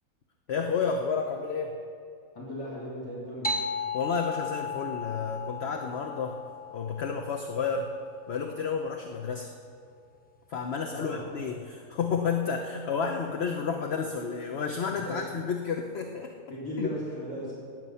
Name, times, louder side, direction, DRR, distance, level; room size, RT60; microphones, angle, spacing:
voice 1, 0.5-1.8 3.9-6.4 6.7-7.9 8.3-9.5 10.5-16.3 16.8-16.9, left 5 dB, 50° left, 3 dB, 1.0 m, -31 dB
voice 2, 2.3-3.6 10.9-11.2 15.0-15.2 16.5-17.5, equal, 85° left, -7 dB, 3.6 m, -36 dB
sound 1, 3.4-8.4, left 4 dB, 10° left, 0.5 m, -36 dB
18.5 x 9.3 x 5.6 m, 2.4 s
omnidirectional pair, 1.5 m